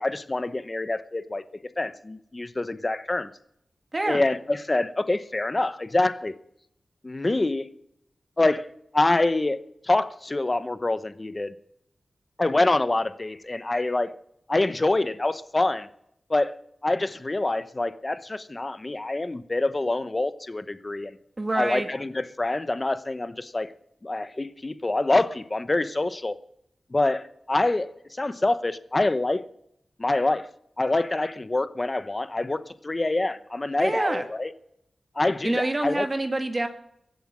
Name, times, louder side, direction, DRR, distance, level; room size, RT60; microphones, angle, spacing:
voice 1, 0.0-1.4 1.8-3.3 4.1-6.3 7.0-7.7 8.4-8.7 8.9-9.6 9.8-11.5 12.4-14.1 14.5-15.9 16.3-16.5 16.8-21.1 21.6-23.7 24.0-26.3 26.9-27.9 28.2-29.4 30.0-30.5 30.8-34.5 35.2-36.1, left 2 dB, 25° left, 13 dB, 0.8 m, -25 dB
voice 2, 3.9-4.2 21.4-21.9 33.8-34.2 35.4-36.7, right 2 dB, 25° right, 6 dB, 1.7 m, -26 dB
23.0 x 8.0 x 6.1 m, 0.76 s
wide cardioid pair, 115°, 0 cm